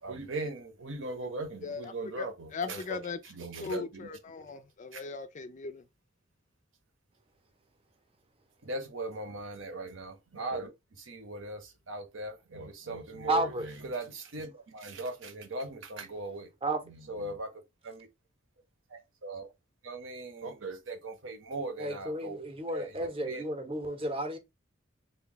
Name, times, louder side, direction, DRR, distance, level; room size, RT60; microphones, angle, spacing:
voice 1, 0.0-4.1 4.5-4.6 4.9-5.0 8.6-16.5 16.8-18.1 18.9-19.5 19.8-23.5, right 2 dB, 75° right, 0.9 m, -39 dB
voice 2, 2.5-3.2 3.6-5.8, left 4 dB, 40° left, 0.4 m, -38 dB
voice 3, 13.3-13.7 16.6-16.8 21.8-24.4, right 1 dB, 30° right, 0.7 m, -32 dB
3.5 x 2.2 x 3.8 m
head